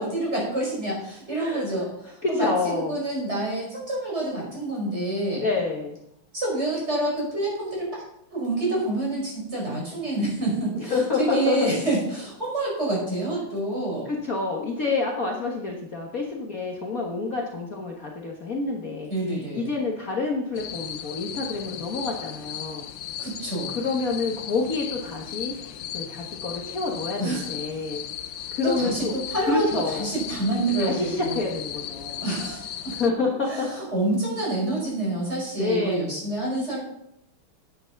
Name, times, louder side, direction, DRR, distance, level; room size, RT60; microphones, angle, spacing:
voice 1, 0.0-2.5 2.8-5.4 6.3-8.0 8.3-14.1 19.1-19.7 23.2-23.8 27.2-27.4 28.6-31.4 32.2-33.0 33.5-36.8, right 2 dB, 30° right, -4 dB, 5.7 m, -27 dB
voice 2, 2.2-3.0 5.4-5.9 10.8-11.7 14.1-22.9 23.7-28.0 28.5-29.2 29.5-30.1 30.8-32.2 33.0-33.7 35.6-36.0, left 4 dB, 45° left, -1 dB, 1.6 m, -28 dB
sound 1, 20.6-33.1, left 10 dB, 70° left, 1.2 m, -36 dB
9.9 x 9.6 x 5.9 m, 0.78 s
omnidirectional pair, 2.4 m